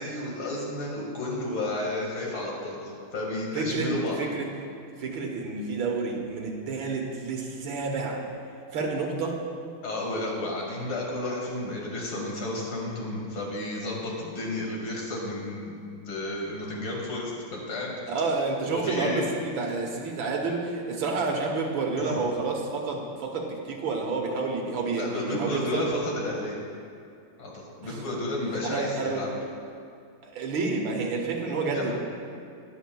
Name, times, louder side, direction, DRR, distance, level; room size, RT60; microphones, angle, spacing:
voice 1, 0.0-2.8 3.1-4.2 9.8-15.8 16.1-17.9 18.7-19.2 22.0-22.2 25.0-26.6 27.4-29.3 31.7-31.9, left 1 dB, 85° left, -3 dB, 2.7 m, -32 dB
voice 2, 3.5-4.5 5.0-8.2 8.7-9.4 18.1-25.9 27.8-28.0 28.6-29.4 30.2-31.9, right 3 dB, 75° right, 1 dB, 1.9 m, -29 dB
20.0 x 7.9 x 2.3 m, 2.4 s
omnidirectional pair, 2.2 m